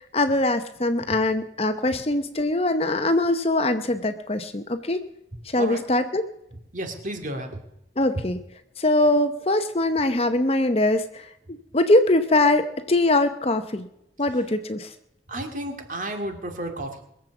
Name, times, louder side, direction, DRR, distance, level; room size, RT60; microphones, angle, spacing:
voice 1, 0.1-5.0 5.5-6.2 8.0-8.4 8.8-11.3 11.7-13.9 14.2-14.9, left 2 dB, 35° left, 9 dB, 0.8 m, -22 dB
voice 2, 5.6-5.9 6.7-7.6 15.3-17.0, right 1 dB, 45° right, 4 dB, 2.3 m, -32 dB
21.5 x 7.6 x 7.0 m, 0.81 s
head